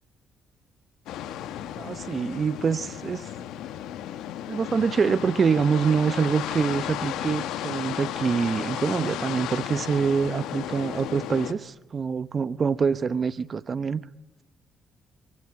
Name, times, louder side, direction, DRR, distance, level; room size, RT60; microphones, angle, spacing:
sound 1, 1.1-11.5, left 11 dB, 90° left, 1.7 m, -34 dB
voice 1, 1.8-3.3 4.5-14.0, right 5 dB, 40° right, 1.1 m, -25 dB
24.5 x 24.0 x 9.9 m
cardioid pair, 90°, 0 cm